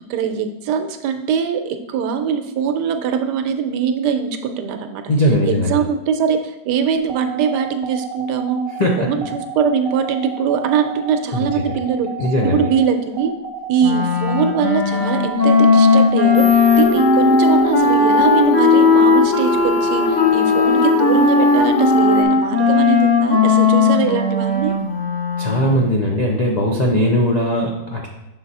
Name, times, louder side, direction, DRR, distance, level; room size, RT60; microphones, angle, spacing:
voice 1, 0.1-5.0 5.4-8.6 9.0-12.1 12.4-13.3 13.7-24.7, right 7 dB, 80° right, 7 dB, 1.2 m, -22 dB
voice 2, 5.1-5.8 8.8-9.1 11.3-11.5 12.2-12.6 25.4-28.1, equal, 65° left, -1 dB, 0.4 m, -19 dB
sound 1, 7.1-16.5, right 7 dB, 65° right, 1.0 m, -32 dB
Wind instrument woodwind instrument, 13.8-25.9, left 4 dB, 30° left, 0.9 m, -16 dB
sound 2, 16.3-22.2, equal, 85° left, 1.4 m, -25 dB
6.4 x 4.0 x 4.1 m, 0.96 s
omnidirectional pair, 1.8 m